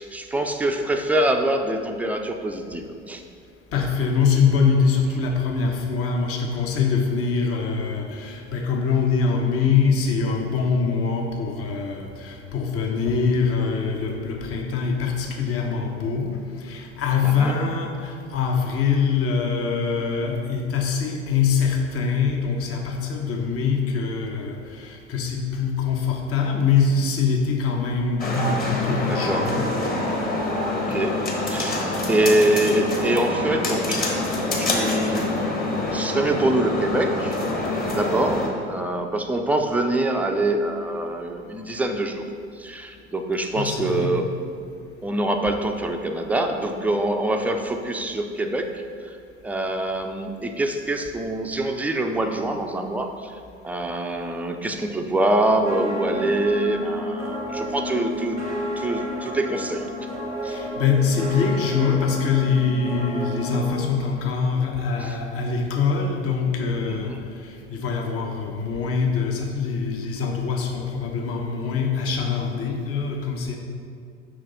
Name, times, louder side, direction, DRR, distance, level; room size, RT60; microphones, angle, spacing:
voice 1, 0.0-3.2 17.2-17.6 29.0-29.5 30.7-31.8 32.1-34.0 34.6-35.3 35.9-37.4 37.8-42.3 42.6-44.3 45.0-49.2 49.4-58.4 58.8-60.1 60.4-60.6 65.0-65.2 67.0-67.2, right 1 dB, 5° right, 4 dB, 0.4 m, -25 dB
voice 2, 3.7-29.7 43.5-44.1 60.5-67.2 67.4-73.6, left 5 dB, 40° left, 2 dB, 1.0 m, -24 dB
sound 1, 28.2-38.5, left 2 dB, 25° left, 1.3 m, -26 dB
sound 2, 55.6-63.8, left 1 dB, 85° right, 0.9 m, -31 dB
6.2 x 5.5 x 4.0 m, 2.2 s
figure-of-eight pair, 60°, 34 cm